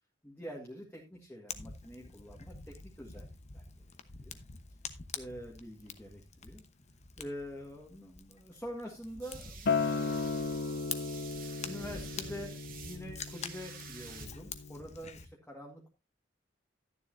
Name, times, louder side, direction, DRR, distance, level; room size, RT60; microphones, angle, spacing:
voice 1, 0.2-3.8 4.2-4.4 5.1-6.6 7.2-10.6 11.6-12.5 12.8-15.9, equal, 10° left, -2 dB, 1.8 m, -46 dB
Fire, 1.5-15.3, left 6 dB, 40° left, 1.0 m, -47 dB
sound 1, 9.1-14.3, right 7 dB, 50° right, 2.4 m, -50 dB
Acoustic guitar, 9.7-14.9, left 4 dB, 60° left, 0.6 m, -35 dB
12.0 x 10.5 x 2.7 m, 0.24 s
head